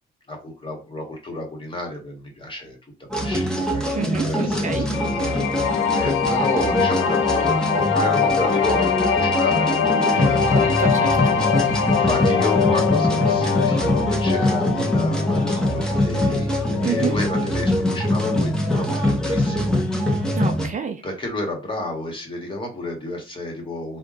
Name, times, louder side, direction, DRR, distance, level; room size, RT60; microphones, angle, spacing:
voice 1, 0.3-2.8 3.2-10.4 10.7-10.8 11.8-16.5 16.8-20.3 21.0-24.0, left 2 dB, 25° left, 1 dB, 1.5 m, -31 dB
sound 1, 3.1-20.7, left 1 dB, 5° left, 1.0 m, -23 dB
voice 2, 3.9-4.9 10.1-11.4 16.8-17.1 20.3-21.0, right 6 dB, 40° right, 7 dB, 0.5 m, -28 dB
sound 2, 4.9-16.0, left 7 dB, 90° left, 0.6 m, -23 dB
3.5 x 2.5 x 3.7 m, 0.31 s
cardioid pair, 90°, 20 cm